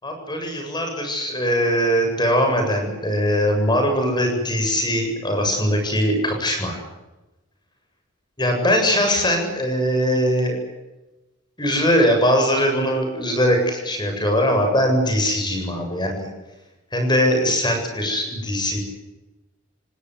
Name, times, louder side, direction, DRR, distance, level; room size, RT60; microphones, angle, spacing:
voice 1, 0.0-6.8 8.4-10.6 11.6-16.3 16.9-18.8, equal, 20° left, 4 dB, 7.8 m, -21 dB
28.5 x 19.0 x 8.3 m, 1.1 s
head